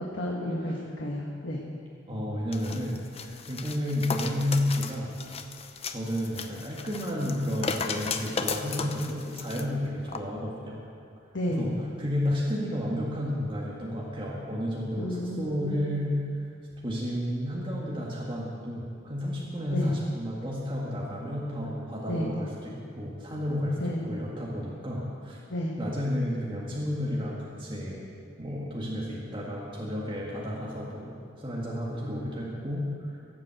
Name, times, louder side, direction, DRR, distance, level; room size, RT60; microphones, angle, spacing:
voice 1, 0.1-1.6 11.3-11.8 15.0-15.8 19.7-19.9 22.1-22.3 23.8-24.0 25.5-25.7, equal, 65° left, -2 dB, 1.5 m, -31 dB
voice 2, 2.1-5.1 5.9-10.8 11.5-11.7 12.0-16.5 16.8-23.8 24.1-25.4 25.8-28.0 28.4-33.2, left 1 dB, 25° right, -5 dB, 1.8 m, -31 dB
sound 1, 2.5-9.6 10.1-10.2, left 5 dB, 30° left, 0.7 m, -35 dB
17.0 x 7.6 x 7.7 m, 2.3 s
head